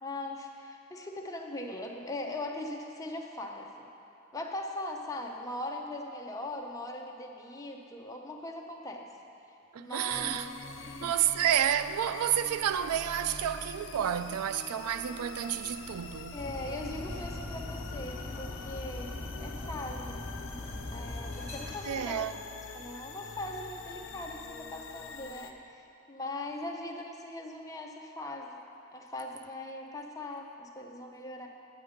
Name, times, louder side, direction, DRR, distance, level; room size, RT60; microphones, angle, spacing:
voice 1, 0.0-3.9 4.3-9.1 9.8-11.1 16.3-20.2 20.9-22.3 22.7-28.6 28.9-31.5, left 1 dB, 15° left, 0.6 m, -40 dB
voice 2, 9.7-10.5 11.0-16.4 21.9-22.4, right 10 dB, 85° right, 0.3 m, -30 dB
sound 1, 10.1-25.5, left 4 dB, 55° left, 0.6 m, -45 dB
Dog, 16.4-21.7, left 2 dB, 15° right, 1.5 m, -40 dB
9.2 x 8.9 x 5.1 m
head